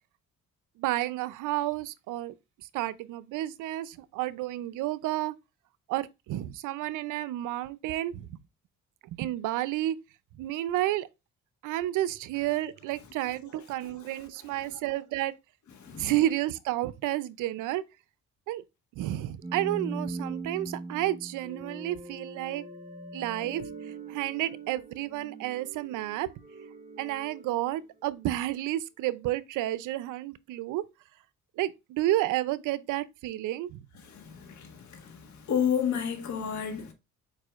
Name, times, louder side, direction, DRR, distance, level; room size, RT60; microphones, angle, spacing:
voice 1, 0.8-2.3 2.7-5.3 5.9-8.4 9.1-10.0 10.4-11.1 11.6-15.3 16.0-17.8 18.5-18.6 19.0-22.6 23.1-23.7 24.1-26.3 27.0-30.8 31.6-33.8, right 15 dB, 85° right, 0.5 m, -31 dB
voice 2, 14.4-14.8 15.7-16.1 34.0-36.9, left 8 dB, 70° left, 1.6 m, -32 dB
sound 1, 19.4-28.4, right 3 dB, 25° right, 1.2 m, -41 dB
4.8 x 4.7 x 2.3 m
cardioid pair, 90°, 30 cm